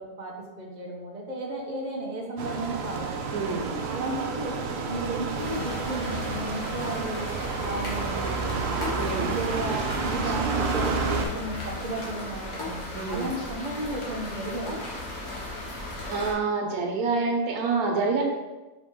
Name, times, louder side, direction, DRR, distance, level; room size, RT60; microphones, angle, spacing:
voice 1, 0.0-3.0 3.8-8.8 9.3-14.8, right 1 dB, 35° right, -2 dB, 0.8 m, -34 dB
sound 1, 2.4-11.3, right 4 dB, 65° right, 0.6 m, -30 dB
voice 2, 3.3-3.7 9.0-9.4 12.9-13.3 16.1-18.2, right 4 dB, 90° right, 1 dB, 1.3 m, -27 dB
sound 2, 5.4-16.3, left 2 dB, 85° left, 1.6 m, -36 dB
5.0 x 2.9 x 3.6 m, 1.1 s
omnidirectional pair, 1.5 m